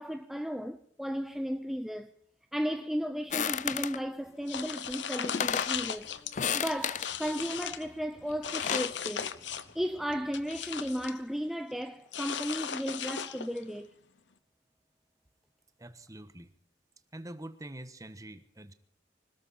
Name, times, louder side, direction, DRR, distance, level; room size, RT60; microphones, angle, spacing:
voice 1, 0.0-2.1 2.5-6.1 6.5-9.3 9.7-13.9, equal, ahead, 0.6 m, -34 dB
sound 1, 3.3-4.0 4.9-5.0 5.2-5.8 6.3-7.1 8.3-8.9, left 8 dB, 45° left, 0.5 m, -32 dB
sound 2, 3.5-11.6, equal, 25° left, 6.3 m, -60 dB
sound 3, 4.5-6.3 6.7-7.8 8.4-9.8 10.1-11.2 12.1-13.6, left 8 dB, 85° left, 1.0 m, -37 dB
voice 2, 15.8-16.5 17.1-18.7, right 1 dB, 20° right, 1.3 m, -45 dB
25.5 x 13.0 x 4.2 m
head